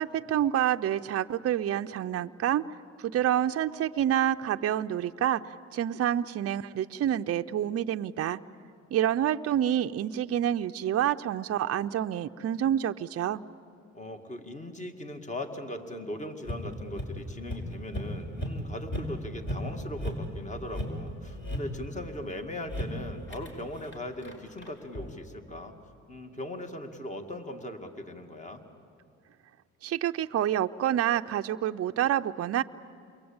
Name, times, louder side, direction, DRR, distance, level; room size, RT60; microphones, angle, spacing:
voice 1, 0.0-2.6 3.0-5.4 5.7-8.4 8.9-13.4 29.8-32.6, right 11 dB, 50° right, 8 dB, 0.6 m, -28 dB
voice 2, 13.9-25.7 26.1-28.6, left 1 dB, 25° left, 5 dB, 2.2 m, -39 dB
sound 1, 16.5-17.1 17.5-17.6 17.9-18.1 18.4-18.6 18.9-19.1 19.5-19.7 20.0-20.2 20.6-21.7 22.7-22.9 23.3-23.5 23.8-25.1, equal, 40° left, 5.0 m, -35 dB
28.5 x 22.0 x 8.8 m, 2.4 s
cardioid pair, 90°, 30 cm